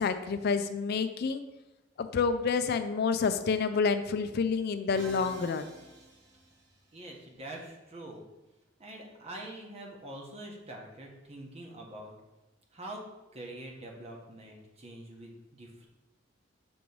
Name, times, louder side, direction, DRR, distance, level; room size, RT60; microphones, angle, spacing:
voice 1, 0.0-1.4 2.0-5.6, left 5 dB, 55° left, 9 dB, 0.4 m, -28 dB
Musical instrument, 4.9-7.0, right 1 dB, 70° right, 1.1 m, -49 dB
voice 2, 6.9-8.3 8.8-12.1 12.7-13.0 13.3-15.9, right 1 dB, 35° right, 0 dB, 1.0 m, -45 dB
6.1 x 3.0 x 5.4 m, 1.0 s
head